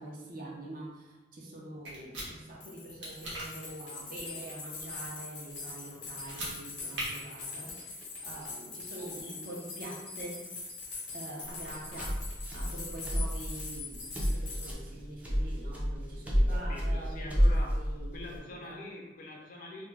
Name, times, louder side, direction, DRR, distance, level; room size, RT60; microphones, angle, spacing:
voice 1, 0.0-10.4 11.1-12.2 12.5-18.8, right 1 dB, 50° right, -2 dB, 0.6 m, -45 dB
sound 1, 1.9-2.3 3.0-3.5 6.2-6.5 6.9-7.1, right 1 dB, 90° right, 0.9 m, -38 dB
sound 2, 2.6-14.7, left 4 dB, 75° left, 0.8 m, -43 dB
sound 3, 11.4-18.4, equal, 10° right, 0.4 m, -30 dB
voice 2, 16.5-17.8 18.1-19.9, left 2 dB, 50° left, -1 dB, 0.5 m, -44 dB
2.3 x 2.1 x 3.2 m, 1.1 s
head